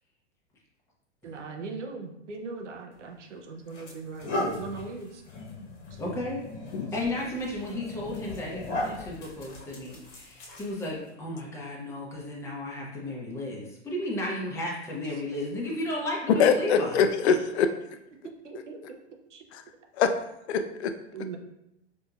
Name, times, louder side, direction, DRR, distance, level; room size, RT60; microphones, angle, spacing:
voice 1, 1.2-5.2 5.9-6.0 18.4-19.0 19.3-19.4 21.1-21.4, right 4 dB, 85° right, 3 dB, 0.6 m, -39 dB
sound 1, 2.9-3.1 3.7-11.1, left 2 dB, 40° left, 1.0 m, -37 dB
voice 2, 6.0-6.4 6.9-17.0, left 1 dB, 10° left, -3 dB, 0.6 m, -34 dB
voice 3, 16.4-17.7 19.5-19.6 20.0-20.1 20.5-21.0, left 6 dB, 65° left, 8 dB, 0.5 m, -23 dB
4.4 x 2.6 x 2.3 m, 0.82 s
hypercardioid pair, 100°, 35 cm